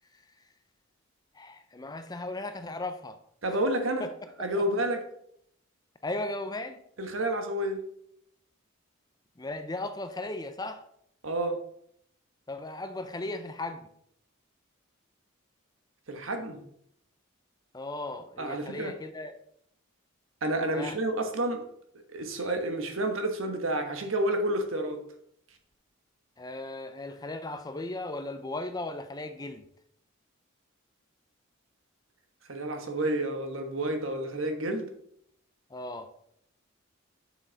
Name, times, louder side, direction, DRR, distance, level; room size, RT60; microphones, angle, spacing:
voice 1, 1.4-3.2 4.0-4.1 6.0-6.8 9.4-10.8 12.5-13.9 17.7-19.4 20.7-21.0 26.4-29.6 35.7-36.1, left 2 dB, 20° left, 9 dB, 0.5 m, -36 dB
voice 2, 3.4-4.1 4.4-5.0 7.0-7.8 11.2-11.6 16.1-16.6 18.4-18.9 20.4-21.6 22.1-25.0 32.5-34.9, right 1 dB, 70° right, 6 dB, 1.3 m, -30 dB
7.7 x 6.4 x 4.0 m, 0.70 s
head